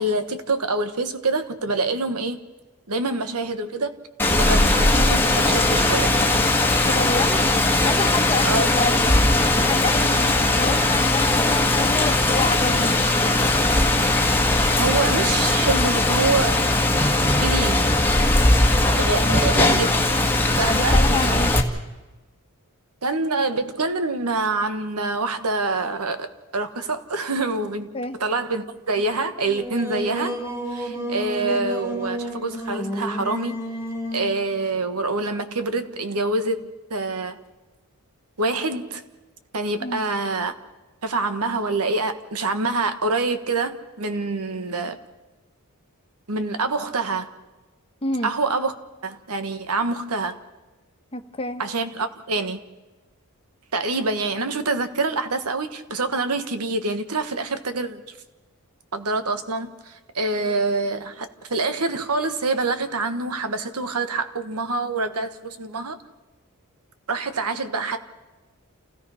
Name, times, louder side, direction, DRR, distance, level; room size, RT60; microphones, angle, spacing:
voice 1, 0.0-2.4 2.9-4.0 4.4-6.1 8.4-8.7 14.7-16.6 17.4-17.9 19.0-20.0 20.4-21.0 23.0-30.3 30.7-33.6 34.1-37.4 38.4-39.0 39.5-40.5 41.0-45.0 46.3-47.3 48.2-48.7 49.0-50.4 51.6-52.6 53.7-58.0 58.9-66.0 67.1-68.0, right 3 dB, 80° right, 1.5 m, -26 dB
Rain, 4.2-21.6, left 2 dB, 10° left, 1.8 m, -19 dB
voice 2, 6.8-7.4 7.8-9.1 9.5-13.5 19.2-19.5 20.6-21.5 27.9-28.2 39.8-40.0 48.0-48.3 51.1-51.6, left 3 dB, 25° left, 1.4 m, -28 dB
Singing, 29.5-34.3, right 1 dB, 10° right, 4.2 m, -31 dB
29.0 x 17.0 x 5.7 m
head